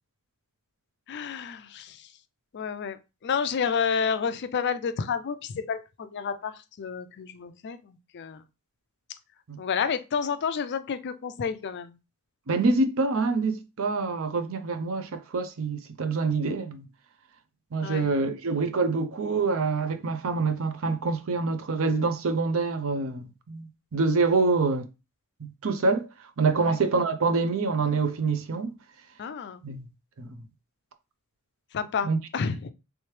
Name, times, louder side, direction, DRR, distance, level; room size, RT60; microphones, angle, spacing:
voice 1, 1.1-2.1 2.5-8.4 9.6-11.9 17.8-18.1 26.6-26.8 29.2-29.6 31.7-32.7, left 6 dB, 50° left, 0.4 m, -30 dB
voice 2, 12.5-16.9 17.7-24.9 25.4-26.1 26.4-28.7 29.6-29.9 30.2-30.4 32.0-32.2, right 4 dB, 65° right, 0.5 m, -26 dB
3.3 x 3.1 x 3.2 m
head